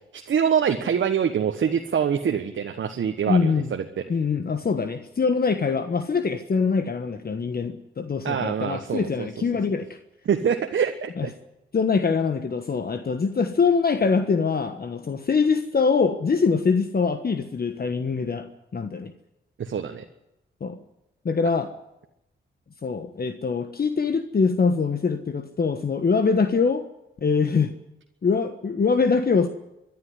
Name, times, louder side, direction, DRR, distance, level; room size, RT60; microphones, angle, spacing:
voice 1, 0.1-4.0 8.2-9.3 10.2-11.3 19.6-20.0, right 7 dB, 70° right, 4 dB, 1.4 m, -25 dB
voice 2, 3.3-3.8 4.1-9.9 11.2-11.3 11.7-18.5 18.7-19.1 20.6-20.8 21.2-21.7 22.8-26.8 27.2-27.7 28.2-29.5, left 5 dB, 50° left, 8 dB, 1.4 m, -23 dB
24.5 x 11.0 x 9.7 m, 0.88 s
cardioid pair, 55°, 21 cm